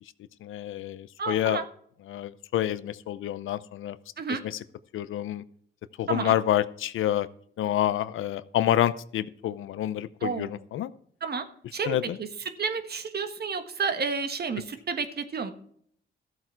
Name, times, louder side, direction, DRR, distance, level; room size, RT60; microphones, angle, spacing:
voice 1, 0.4-1.6 2.1-4.0 4.3-4.6 4.9-5.4 6.0-7.3 7.6-10.9 11.9-12.2, left 12 dB, 90° left, 16 dB, 0.6 m, -28 dB
voice 2, 1.2-1.6 4.2-4.4 6.1-6.3 10.2-10.5 11.2-11.4 11.7-12.3 12.6-15.5, right 5 dB, 55° right, 8 dB, 1.4 m, -31 dB
14.0 x 7.8 x 4.5 m, 0.64 s
cardioid pair, 80°, 20 cm